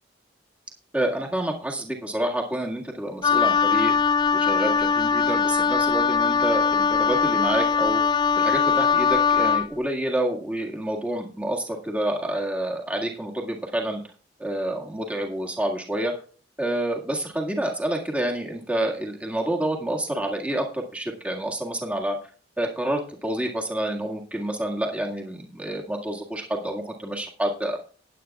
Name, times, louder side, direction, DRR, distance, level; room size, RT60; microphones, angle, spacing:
voice 1, 0.9-3.9 4.3-8.0 8.4-14.0 14.4-16.1 16.6-22.2 22.6-27.8, right 1 dB, 5° right, 0 dB, 1.8 m, -28 dB
Wind instrument woodwind instrument, 3.2-9.7, left 6 dB, 25° left, 0.4 m, -21 dB
19.0 x 8.5 x 2.4 m, 0.40 s
head